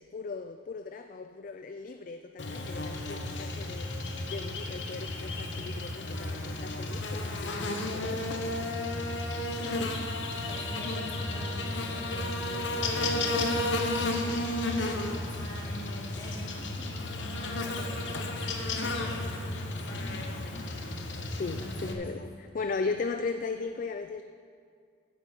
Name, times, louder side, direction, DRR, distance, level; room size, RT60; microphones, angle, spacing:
voice 1, 0.0-8.5 21.3-24.2, left 4 dB, 45° left, 0.4 m, -37 dB
Buzz, 2.4-21.9, left 2 dB, 85° left, 1.1 m, -33 dB
voice 2, 9.6-21.2 21.6-22.1, left 1 dB, 20° left, 1.5 m, -45 dB
9.6 x 8.3 x 7.4 m
head